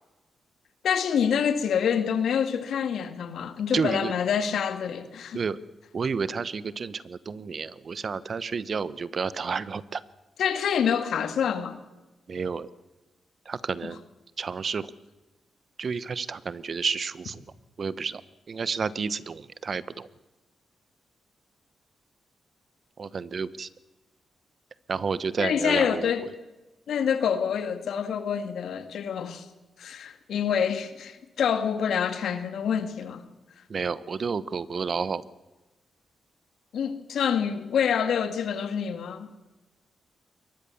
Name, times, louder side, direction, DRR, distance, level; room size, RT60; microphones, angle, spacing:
voice 1, 0.8-5.4 10.4-11.8 13.8-13.9 25.4-26.3 26.9-29.5 29.8-33.3 36.7-39.4, left 7 dB, 75° left, 2.1 m, -27 dB
voice 2, 3.7-4.1 5.3-5.6 5.9-10.0 12.3-12.7 13.5-14.0 14.4-14.9 15.8-17.4 17.8-18.2 18.5-20.1 23.0-23.7 24.9-26.1 33.7-35.2, right 5 dB, 55° right, 1.1 m, -30 dB
23.0 x 19.5 x 7.2 m
supercardioid pair, 50°, 0 cm